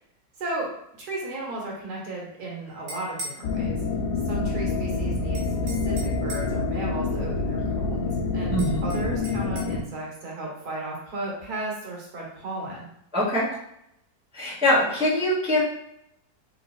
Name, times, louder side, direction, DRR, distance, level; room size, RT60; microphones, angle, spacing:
voice 1, 1.0-3.7 4.2-12.9, right 2 dB, 60° right, -3 dB, 1.7 m, -35 dB
sound 1, 2.7-3.4 5.3-6.6 8.6-9.7, right 1 dB, 80° right, 1.6 m, -39 dB
sound 2, 3.4-9.8, left 3 dB, 85° left, 1.3 m, -27 dB
voice 2, 8.5-9.0 13.1-13.5 14.3-15.6, left 1 dB, 5° right, -7 dB, 0.6 m, -23 dB
3.5 x 2.8 x 4.1 m, 0.76 s
omnidirectional pair, 1.9 m